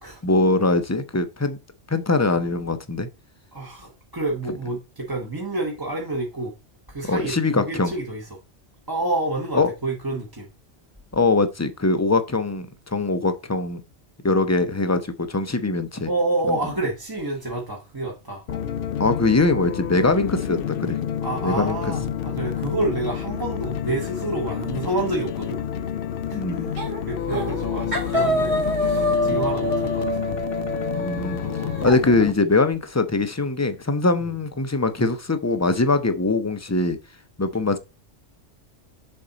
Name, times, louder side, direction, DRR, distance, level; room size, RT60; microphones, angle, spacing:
voice 1, 0.2-1.6 1.9-3.1 7.1-7.9 9.5-9.7 11.1-13.8 14.2-16.1 16.5-16.6 19.0-21.0 21.4-21.8 26.3-26.7 29.3-29.4 31.0-31.4 31.8-37.0 37.4-37.8, left 3 dB, 20° left, 0.4 m, -22 dB
voice 2, 3.5-6.5 6.9-8.4 8.9-10.5 16.0-18.4 21.2-25.6 26.3-30.1 31.3-31.8, right 2 dB, 20° right, 1.0 m, -29 dB
sound 1, 18.5-32.3, left 9 dB, 60° left, 0.7 m, -29 dB
sound 2, 26.8-27.0 27.3-27.6 27.9-32.0, equal, 60° right, 2.4 m, -26 dB
7.0 x 4.4 x 3.9 m
omnidirectional pair, 1.2 m